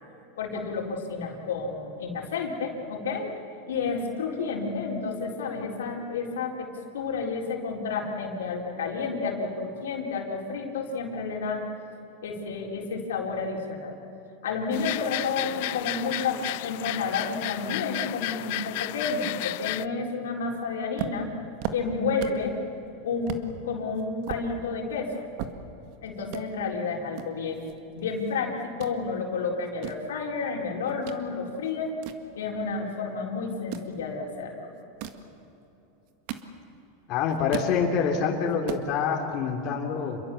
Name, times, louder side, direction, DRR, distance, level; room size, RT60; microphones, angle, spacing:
voice 1, 0.4-3.3 3.7-6.7 6.9-11.6 12.2-13.9 14.4-21.3 21.7-22.6 23.0-25.2 26.0-27.7 28.0-31.9 32.4-34.7, left 4 dB, 90° left, 0 dB, 4.3 m, -30 dB
sound 1, 14.7-19.9, left 20 dB, 65° left, 0.4 m, -33 dB
sound 2, 21.0-22.5 22.9-23.0 23.3-23.5 23.9-25.9 26.2-26.4 27.1-28.3 28.6-29.0 29.5-31.2 31.6-32.9 33.5-33.9 34.8-35.3 35.9-36.9 37.2-37.8 38.2-38.3 38.5-38.9, right 10 dB, 60° right, 1.8 m, -37 dB
voice 2, 37.1-40.2, left 6 dB, 50° left, 0 dB, 3.2 m, -26 dB
28.0 x 22.0 x 7.1 m, 3.0 s
supercardioid pair, 120°, 0 cm